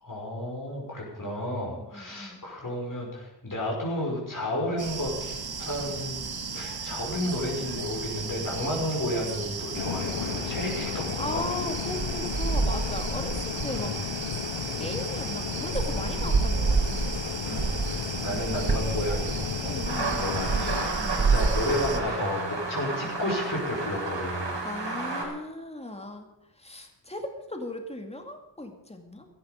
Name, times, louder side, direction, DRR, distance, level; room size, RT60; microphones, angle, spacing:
voice 1, 0.0-6.2 6.5-11.4 13.6-13.9 17.4-19.8 20.1-24.5, left 1 dB, 45° left, -3 dB, 5.8 m, -32 dB
voice 2, 1.8-2.4 11.2-14.0 14.6-17.1 19.6-21.3 24.6-26.3 26.6-29.3, left 1 dB, 15° left, 4 dB, 2.3 m, -37 dB
sound 1, 4.8-22.0, right 4 dB, 55° right, 1.5 m, -31 dB
sound 2, 9.7-20.9, left 9 dB, 75° left, 0.6 m, -34 dB
sound 3, 19.9-25.2, right 3 dB, 70° right, 4.9 m, -32 dB
17.5 x 13.5 x 5.2 m, 0.93 s
wide cardioid pair, 90°, 44 cm